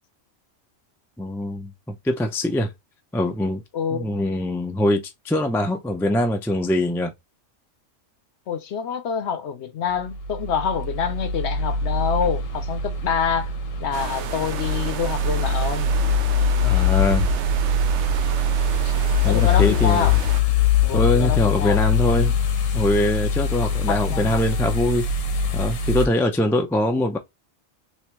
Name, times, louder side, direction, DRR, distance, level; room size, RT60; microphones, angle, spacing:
voice 1, 1.2-2.7 3.1-3.6 3.9-7.1 16.6-17.3 18.8-18.9 19.2-20.1 20.9-22.3 22.7-25.1 25.5-27.2, left 1 dB, 5° left, 0.3 m, -23 dB
voice 2, 3.7-4.2 8.5-13.5 13.8-15.9 19.2-20.2 20.8-21.8 23.9-24.4, left 7 dB, 65° left, 0.9 m, -26 dB
sound 1, 9.9-26.1, left 4 dB, 90° left, 1.3 m, -22 dB
sound 2, 13.9-20.4, right 9 dB, 70° right, 0.8 m, -34 dB
3.4 x 3.0 x 3.0 m
omnidirectional pair, 1.3 m